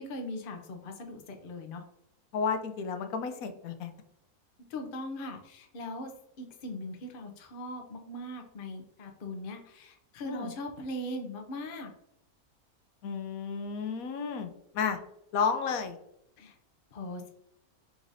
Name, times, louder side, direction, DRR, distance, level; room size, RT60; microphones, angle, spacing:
voice 1, 0.0-1.8 4.7-6.1 6.4-11.9 16.4-16.5 16.9-17.3, left 1 dB, 50° left, 4 dB, 0.7 m, -40 dB
voice 2, 2.3-3.9 10.2-10.5 13.0-14.5 14.7-15.0 15.3-16.0, left 6 dB, 70° left, 7 dB, 1.0 m, -32 dB
4.7 x 3.8 x 2.6 m, 0.77 s
omnidirectional pair, 1.6 m